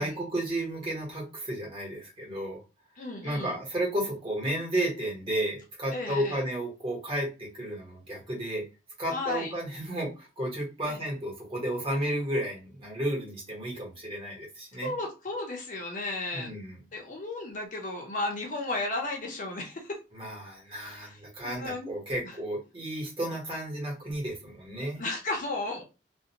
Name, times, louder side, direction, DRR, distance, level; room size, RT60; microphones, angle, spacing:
voice 1, 0.0-2.6 3.2-8.6 9.0-14.9 16.3-16.8 20.1-25.0, right 1 dB, 30° right, -3 dB, 1.2 m, -32 dB
voice 2, 3.0-3.6 5.9-6.4 9.1-9.5 10.9-11.0 14.8-16.6 16.9-20.0 20.9-21.1 21.4-22.3 25.0-25.8, left 2 dB, 45° left, 1 dB, 0.6 m, -34 dB
2.4 x 2.1 x 2.8 m, 0.29 s
head